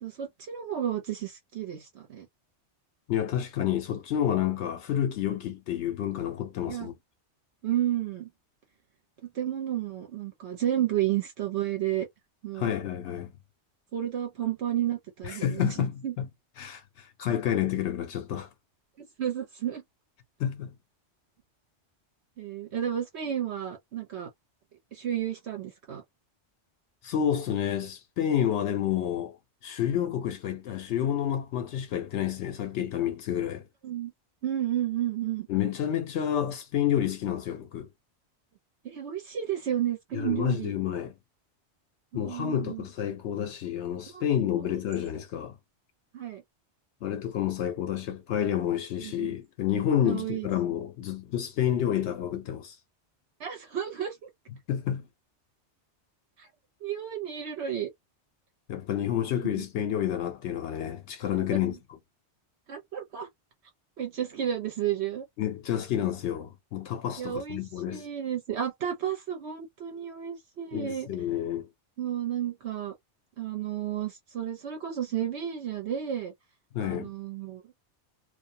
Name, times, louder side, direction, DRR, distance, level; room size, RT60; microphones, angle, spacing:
voice 1, 0.0-2.3 6.7-6.9 7.6-8.3 9.2-12.1 12.4-12.7 13.9-16.1 19.0-19.8 22.4-24.3 24.9-26.0 33.8-34.1 34.4-35.5 38.8-40.7 42.1-42.8 44.1-44.3 44.5-44.7 46.1-46.4 49.0-49.3 50.0-50.5 53.4-54.3 56.4-56.5 56.8-57.9 59.4-59.6 61.4-61.7 62.7-63.3 64.0-65.3 67.2-67.6 67.9-71.1 72.0-72.9 73.4-76.3 76.8-77.6, right 10 dB, 75° right, 1.0 m, -32 dB
voice 2, 3.1-6.9 12.5-13.3 15.2-16.3 16.6-18.5 20.4-20.7 27.0-33.7 35.5-37.9 40.1-41.1 42.1-45.6 47.0-52.8 54.7-55.1 58.7-62.0 65.4-68.1 70.7-71.7 76.7-77.1, left 10 dB, 80° left, 0.9 m, -29 dB
2.4 x 2.2 x 2.6 m
omnidirectional pair, 1.2 m